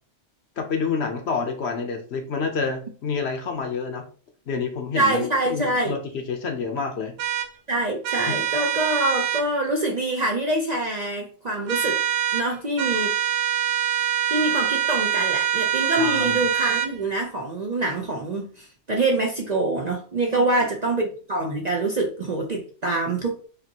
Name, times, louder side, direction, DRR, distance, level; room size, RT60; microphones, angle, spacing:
voice 1, 0.6-4.0 4.5-7.1 8.3-8.4 15.3-15.4 16.0-16.4 20.3-20.7, left 5 dB, 60° left, 4 dB, 1.0 m, -28 dB
voice 2, 4.9-5.9 7.7-12.0 12.3-13.1 14.0-23.3, right 2 dB, 45° right, 0 dB, 0.6 m, -25 dB
sound 1, 7.2-7.5 8.0-9.5 11.7-12.5 12.8-16.9, right 10 dB, 75° right, 0.9 m, -24 dB
5.2 x 2.7 x 2.9 m, 0.40 s
omnidirectional pair, 1.3 m